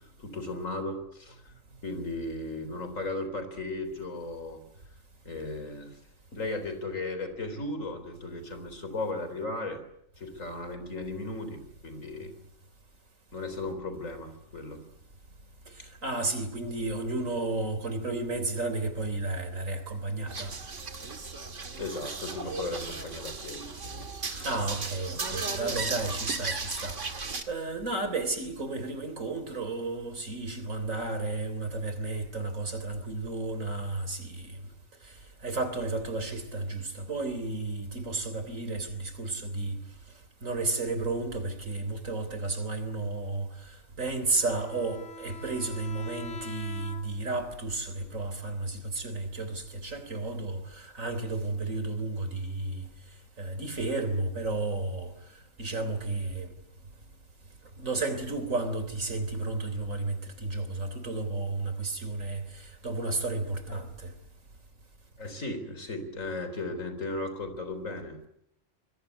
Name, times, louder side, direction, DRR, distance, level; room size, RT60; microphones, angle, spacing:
voice 1, 0.2-1.5 1.8-4.6 5.2-6.0 6.3-9.8 10.2-12.4 13.3-14.8 21.8-24.6 65.2-68.2, left 2 dB, 85° left, 4.3 m, -36 dB
voice 2, 15.8-20.5 24.4-34.6 35.0-35.1 35.4-39.8 40.4-43.5 44.0-52.9 53.4-55.1 55.6-56.5 57.8-64.1, right 2 dB, 90° right, 3.9 m, -32 dB
sound 1, 20.3-27.4, right 4 dB, 65° right, 2.5 m, -36 dB
Bowed string instrument, 44.3-47.4, equal, 60° left, 2.0 m, -44 dB
25.0 x 22.0 x 8.1 m
omnidirectional pair, 1.3 m